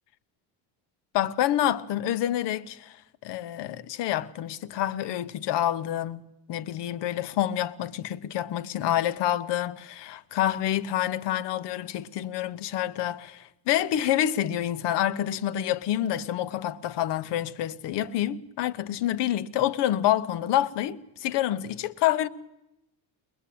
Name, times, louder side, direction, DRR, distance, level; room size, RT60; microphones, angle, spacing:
voice 1, 1.1-3.0 3.2-6.2 6.5-22.3, left 12 dB, 60° left, 1.0 m, -27 dB
22.0 x 21.0 x 8.6 m
cardioid pair, 180°, 46 cm